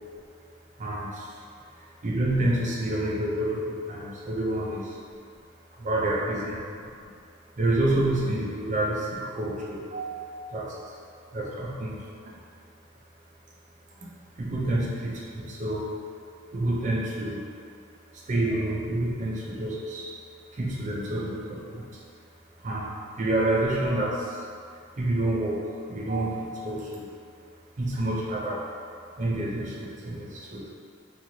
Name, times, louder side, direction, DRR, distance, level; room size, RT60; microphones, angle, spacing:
voice 1, 0.8-1.4 2.0-5.0 5.8-6.6 6.8-7.1 7.6-11.0 11.3-12.3 14.0-14.1 14.4-15.9 16.5-17.5 18.1-20.1 20.5-22.0 22.6-24.5 25.0-27.1 27.8-28.7 29.2-30.7, right 1 dB, 35° right, -3 dB, 0.4 m, -28 dB
3.0 x 2.4 x 2.7 m, 2.2 s
head